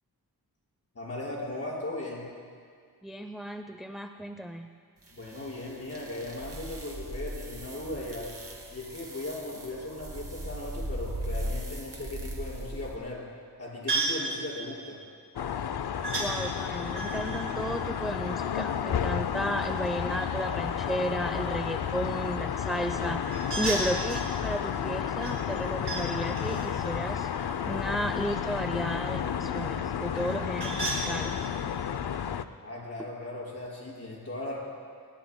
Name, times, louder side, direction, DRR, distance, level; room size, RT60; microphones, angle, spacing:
voice 1, 1.0-2.3 5.1-8.3 8.7-13.2 13.6-15.0 32.6-34.6, left 2 dB, 40° left, -5 dB, 5.3 m, -37 dB
voice 2, 3.0-4.7 16.2-23.2 23.6-27.3 27.6-31.5, right 1 dB, ahead, 6 dB, 0.5 m, -34 dB
sound 1, 5.1-13.0, equal, 35° right, 2.3 m, -38 dB
sound 2, 13.9-14.3 16.0-16.3 16.9-18.7 23.3-24.3 25.2-26.1 26.4-28.3 30.1-31.0, right 3 dB, 90° right, 5.0 m, -34 dB
sound 3, 15.4-32.4, left 8 dB, 70° left, 0.6 m, -32 dB
29.5 x 20.5 x 2.2 m, 2.1 s
wide cardioid pair, 125°, 39 cm